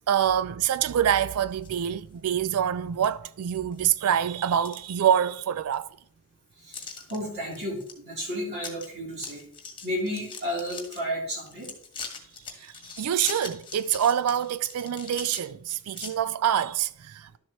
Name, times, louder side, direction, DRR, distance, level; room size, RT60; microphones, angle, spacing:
voice 1, 0.1-5.9 12.6-17.4, right 9 dB, 80° right, 0.4 m, -26 dB
sound 1, 1.2-1.8 2.2-2.3 3.0-3.1 3.5-4.0 4.4-5.4 5.7-5.8 6.7-7.2 7.5-7.9 8.2-8.3 8.6-8.9 9.1-11.0 11.5-16.1, left 5 dB, 25° left, 1.6 m, -41 dB
voice 2, 6.6-9.4 9.8-11.7, equal, 50° right, 3.5 m, -32 dB
12.0 x 7.1 x 3.1 m
head